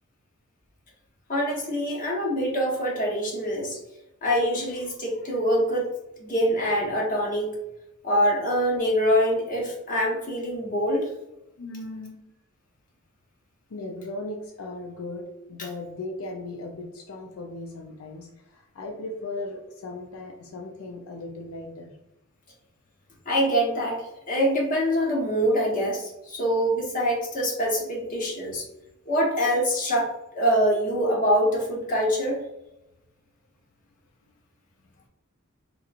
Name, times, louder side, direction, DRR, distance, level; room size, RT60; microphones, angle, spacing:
voice 1, 1.3-3.8 4.2-5.9 6.2-7.5 8.0-11.1 23.2-28.7 29.1-32.4, equal, 40° left, -2 dB, 1.0 m, -24 dB
voice 2, 11.6-12.3 13.7-22.0, left 2 dB, 85° left, 2 dB, 0.5 m, -37 dB
3.8 x 2.9 x 2.4 m, 0.92 s
head